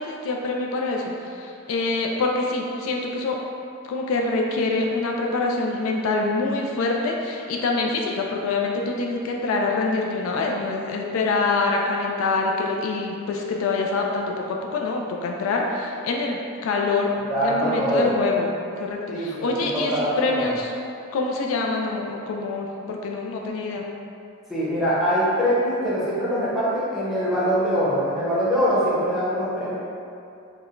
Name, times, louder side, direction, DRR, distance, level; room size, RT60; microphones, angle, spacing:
voice 1, 0.0-3.4 3.9-18.5 18.8-20.7 21.1-23.9, left 3 dB, 70° left, 0 dB, 0.3 m, -25 dB
voice 2, 17.3-18.1 19.1-20.6 24.5-29.7, equal, ahead, -11 dB, 0.7 m, -23 dB
4.6 x 2.1 x 2.5 m, 2.6 s
head